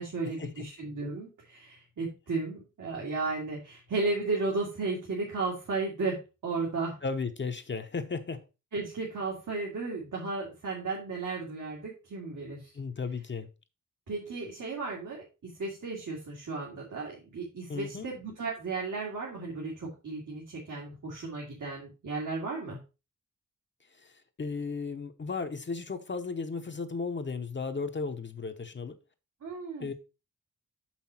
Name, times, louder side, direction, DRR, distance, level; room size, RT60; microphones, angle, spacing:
voice 1, 0.0-7.0 8.7-12.7 14.1-22.8 29.4-29.9, right 3 dB, 75° right, 2.2 m, -34 dB
voice 2, 7.0-8.4 12.7-13.5 17.7-18.1 24.0-24.1 24.4-29.0 29.8-29.9, left 4 dB, 35° left, 0.7 m, -35 dB
6.7 x 5.7 x 4.2 m
wide cardioid pair, 165°, 31 cm